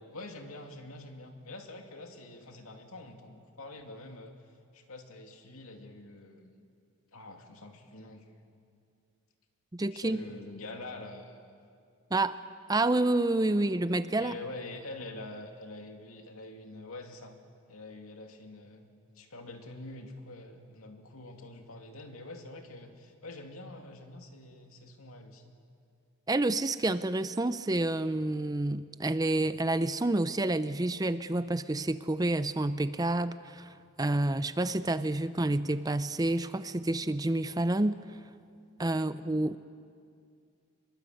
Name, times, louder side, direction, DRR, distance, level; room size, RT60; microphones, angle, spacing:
voice 1, 0.1-4.3 4.7-6.6 7.1-8.3 9.9-11.4 14.1-17.4 17.7-18.9 19.2-25.5, left 2 dB, 80° left, 4 dB, 2.5 m, -45 dB
voice 2, 9.7-10.2 12.1-12.4 12.7-14.3 26.3-38.0 38.8-39.6, right 2 dB, 15° right, 13 dB, 0.5 m, -29 dB
25.5 x 22.0 x 7.9 m, 2.3 s
head